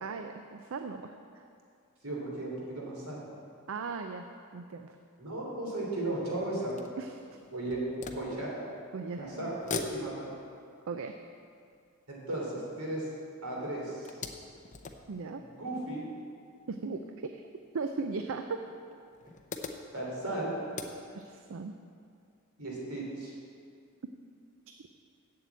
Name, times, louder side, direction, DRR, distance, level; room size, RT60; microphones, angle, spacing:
voice 1, 0.0-1.4 3.7-4.2 4.5-5.0 7.0-7.2 8.9-9.5 10.9-11.2 15.1-15.4 16.7-17.5 17.7-18.6 21.1-21.8, right 4 dB, 65° right, 6 dB, 0.5 m, -37 dB
voice 2, 2.0-3.3 5.2-6.7 7.5-7.8 8.1-8.7 9.2-10.3 12.1-13.1 13.4-14.1 15.6-16.0 19.9-20.5 22.6-23.3, right 2 dB, 80° right, -3 dB, 3.1 m, -35 dB
sound 1, 6.1-9.0 9.4-13.3 13.7-16.3 17.2-17.3 17.6-17.7 18.8-21.5, left 4 dB, 35° left, 0.7 m, -44 dB
7.8 x 7.5 x 8.2 m, 2.3 s
head